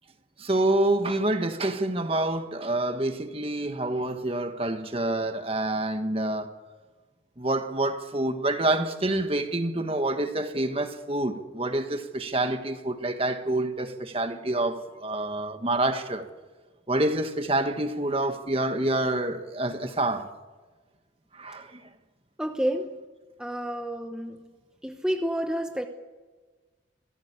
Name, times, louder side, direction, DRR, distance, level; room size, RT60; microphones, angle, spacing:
voice 1, 0.4-6.6 7.4-16.3 16.9-20.3 21.3-21.8, right 2 dB, 30° right, 1.6 m, -27 dB
voice 2, 22.4-23.0 23.4-24.4 24.8-25.9, equal, 5° right, 1.0 m, -29 dB
25.5 x 18.0 x 8.4 m
head